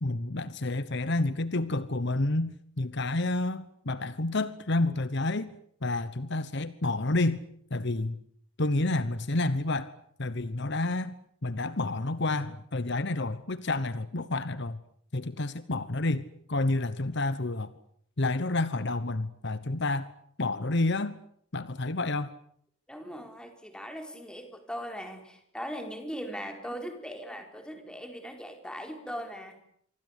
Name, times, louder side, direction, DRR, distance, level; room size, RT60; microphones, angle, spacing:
voice 1, 0.0-5.5 5.8-7.4 7.7-8.2 8.6-9.9 10.2-11.1 11.4-14.8 15.1-17.7 18.2-20.1 20.4-21.1 21.5-22.3, left 2 dB, 55° left, 14 dB, 1.1 m, -29 dB
voice 2, 22.9-29.6, equal, 5° left, 5 dB, 4.6 m, -39 dB
26.5 x 24.0 x 8.3 m, 0.66 s
head